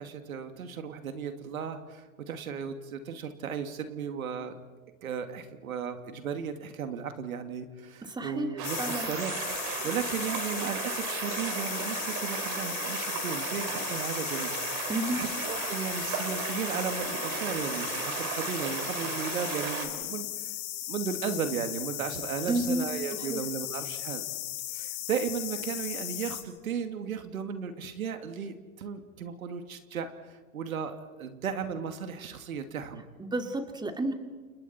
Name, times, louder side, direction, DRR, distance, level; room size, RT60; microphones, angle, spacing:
voice 1, 0.0-4.5 5.0-20.5 20.9-24.2 24.7-33.0, right 6 dB, 85° right, 7 dB, 2.4 m, -35 dB
voice 2, 8.0-8.5 8.8-9.1 14.9-15.2 22.5-22.9 23.2-23.4 33.2-34.1, right 1 dB, 10° right, 5 dB, 2.5 m, -31 dB
sound 1, 8.6-26.4, left 14 dB, 55° left, 5.1 m, -36 dB
sound 2, 8.6-19.9, right 7 dB, 50° right, 4.4 m, -35 dB
29.5 x 29.0 x 4.4 m, 1.3 s
hypercardioid pair, 110°, 41 cm